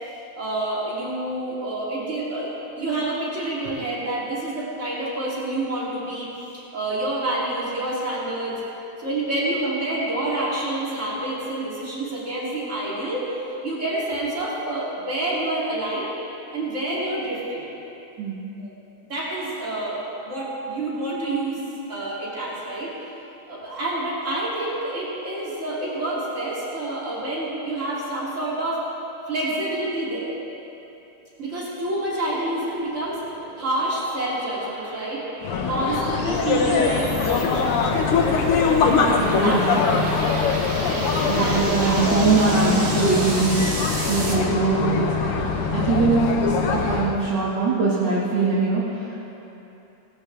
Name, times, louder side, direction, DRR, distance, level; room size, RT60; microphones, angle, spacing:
voice 1, 0.4-2.5 2.8-6.3 6.5-8.6 9.0-16.1 16.5-17.7 18.6-18.7 19.1-20.0 20.2-22.9 23.5-28.8 29.3-30.4 31.4-33.2 33.6-35.2 35.7-37.8 39.4-39.7 40.7-42.3, right 1 dB, 35° right, -7 dB, 3.1 m, -28 dB
sound 1, 32.7-44.3, right 2 dB, 75° right, 2.5 m, -35 dB
sound 2, 35.4-47.2, left 5 dB, 85° left, 1.9 m, -23 dB
voice 2, 38.9-40.0 41.2-43.8 44.1-45.4 45.7-49.2, right 3 dB, 55° right, -9 dB, 2.3 m, -22 dB
18.5 x 12.5 x 3.4 m, 3.0 s
omnidirectional pair, 2.4 m